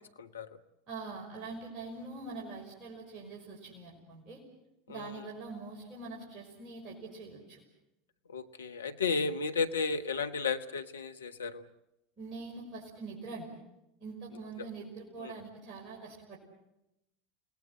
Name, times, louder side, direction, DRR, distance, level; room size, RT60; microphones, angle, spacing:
voice 1, 0.2-0.6 4.9-5.3 8.3-11.6 15.2-15.3, left 5 dB, 80° left, 9 dB, 1.2 m, -33 dB
voice 2, 0.9-4.4 4.9-7.6 12.2-13.6 14.0-16.4, right 3 dB, 40° right, -3 dB, 6.0 m, -44 dB
29.5 x 19.0 x 7.8 m, 0.89 s
figure-of-eight pair, 80°, 0 cm